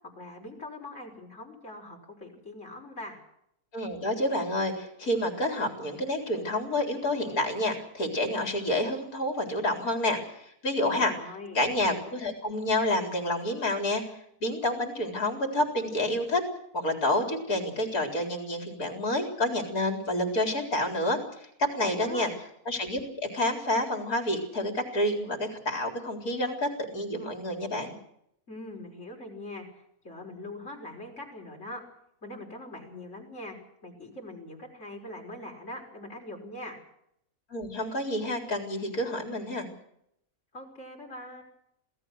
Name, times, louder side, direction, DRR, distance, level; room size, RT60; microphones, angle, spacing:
voice 1, 0.0-3.2 10.8-11.6 21.8-22.3 28.5-31.8 32.2-33.6 33.8-36.8 40.5-41.4, left 1 dB, 50° left, 0 dB, 6.0 m, -42 dB
voice 2, 3.7-11.1 11.5-14.0 14.4-16.4 16.7-22.3 22.7-27.9 37.5-39.7, left 1 dB, 70° left, 4 dB, 4.6 m, -29 dB
27.0 x 17.5 x 6.5 m, 0.76 s
omnidirectional pair, 1.6 m